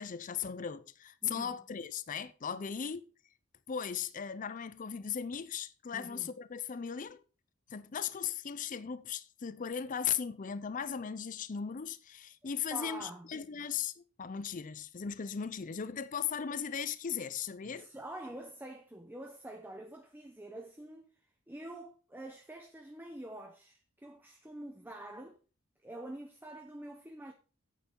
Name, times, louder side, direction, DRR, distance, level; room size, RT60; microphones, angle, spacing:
voice 1, 0.0-3.0 3.7-7.2 7.7-17.9, left 7 dB, 40° left, 0.5 m, -37 dB
voice 2, 1.2-1.6 2.5-2.6 5.9-6.3 12.7-13.3 17.6-21.1 21.5-25.4 25.8-27.3, right 1 dB, 10° right, 0.8 m, -46 dB
8.9 x 7.9 x 4.4 m
head